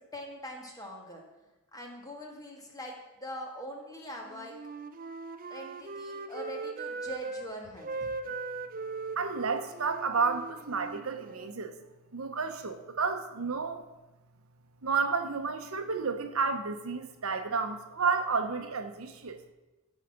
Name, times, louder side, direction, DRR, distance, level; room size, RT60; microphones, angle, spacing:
voice 1, 0.1-1.2 1.7-4.5 5.5-8.1 8.8-8.9, equal, 15° left, 0 dB, 1.7 m, -43 dB
Wind instrument woodwind instrument, 4.2-7.5 7.8-11.5, right 3 dB, 40° right, 0.6 m, -39 dB
voice 2, 9.2-11.8 12.1-13.8 14.8-19.4, right 4 dB, 70° right, 7 dB, 0.9 m, -31 dB
14.0 x 4.9 x 5.9 m, 1.0 s
head